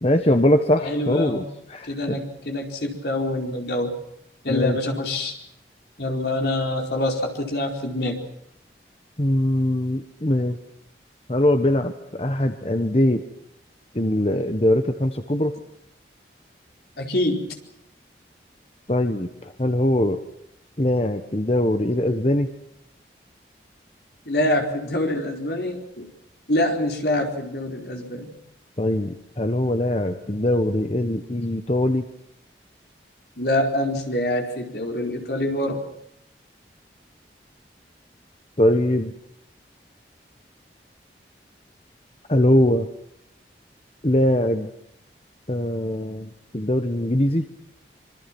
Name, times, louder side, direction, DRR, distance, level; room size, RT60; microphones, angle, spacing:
voice 1, 0.0-2.2 4.5-4.8 9.2-10.6 11.3-13.2 13.9-15.6 18.9-20.2 20.8-22.5 28.8-32.1 38.6-39.1 42.3-42.9 44.0-44.7 45.5-47.5, left 1 dB, 35° left, 7 dB, 1.3 m, -22 dB
voice 2, 0.8-1.5 1.9-3.9 4.4-5.4 6.0-8.2 17.0-17.6 24.3-26.1 26.5-28.3 33.4-35.8, left 1 dB, 65° left, 3 dB, 4.6 m, -25 dB
26.5 x 25.0 x 6.2 m, 0.78 s
head